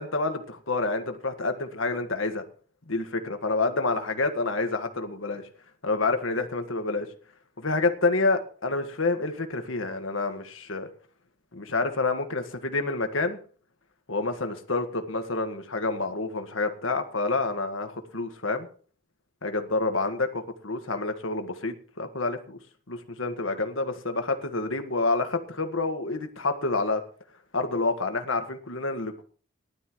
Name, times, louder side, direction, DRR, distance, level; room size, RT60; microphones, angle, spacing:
voice 1, 0.0-2.4 2.9-5.4 5.8-7.1 7.6-10.9 11.5-13.4 14.1-18.7 19.4-20.3 20.6-22.6 22.9-27.0 27.5-29.2, left 3 dB, 70° left, 6 dB, 1.7 m, -28 dB
19.5 x 12.5 x 3.1 m, 0.42 s
head